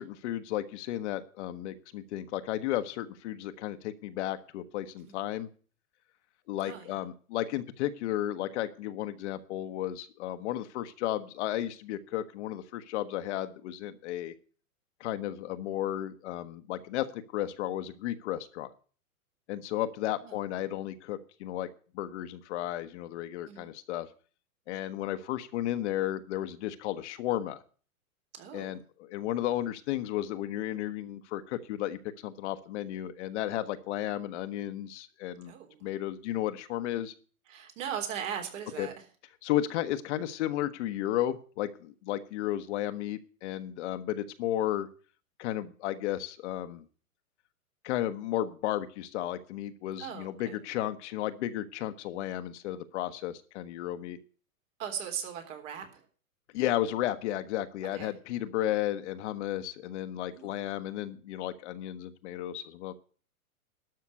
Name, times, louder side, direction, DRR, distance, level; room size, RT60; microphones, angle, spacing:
voice 1, 0.0-5.5 6.5-14.3 15.0-18.7 19.5-21.7 21.9-24.1 24.7-27.6 28.5-35.5 35.8-37.1 38.8-38.9 39.4-44.9 45.4-46.8 47.8-54.2 56.5-62.9, left 13 dB, 50° left, 10 dB, 1.2 m, -33 dB
voice 2, 6.6-7.1 20.2-20.4 23.5-23.7 28.3-28.8 35.4-35.8 37.5-39.0 50.0-50.6 54.8-56.1 57.9-58.1 60.3-60.7, right 8 dB, 60° right, 4 dB, 3.5 m, -39 dB
12.5 x 5.8 x 8.3 m, 0.41 s
hypercardioid pair, 120°, 43 cm